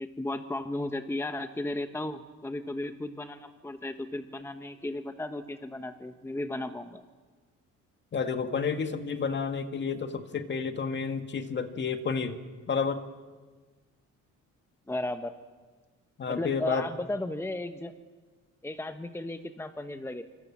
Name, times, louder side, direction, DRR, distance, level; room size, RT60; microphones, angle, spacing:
voice 1, 0.0-7.0 14.9-15.3 16.3-17.9 18.6-20.2, left 1 dB, 10° left, 8 dB, 1.1 m, -35 dB
voice 2, 8.1-12.4 12.7-13.0 16.2-16.9, left 5 dB, 40° left, 7 dB, 2.0 m, -30 dB
26.0 x 25.5 x 7.4 m, 1.4 s
cardioid pair, 120°, 30 cm